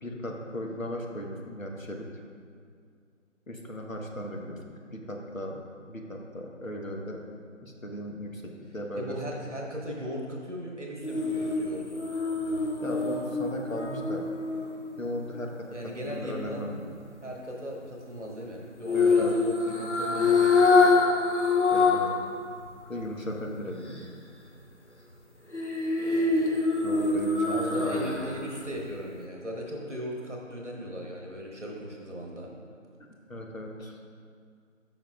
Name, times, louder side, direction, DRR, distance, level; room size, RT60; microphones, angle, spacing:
voice 1, 0.0-2.1 3.5-5.6 5.9-7.2 7.6-9.1 12.8-14.3 15.0-15.8 16.0-16.8 18.9-19.3 21.7-22.2 22.9-24.1 26.8-28.2 33.3-34.0, equal, 80° left, 1 dB, 1.2 m, -36 dB
voice 2, 9.0-12.0 15.7-16.7 17.2-21.0 27.5-32.5, equal, 60° right, -1 dB, 1.3 m, -37 dB
sound 1, 11.0-15.3 18.8-22.2 22.6-22.7 25.5-28.4 28.8-28.9, left 4 dB, 60° left, 1.0 m, -25 dB
12.0 x 5.8 x 2.4 m, 2.2 s
figure-of-eight pair, 180°, 40 cm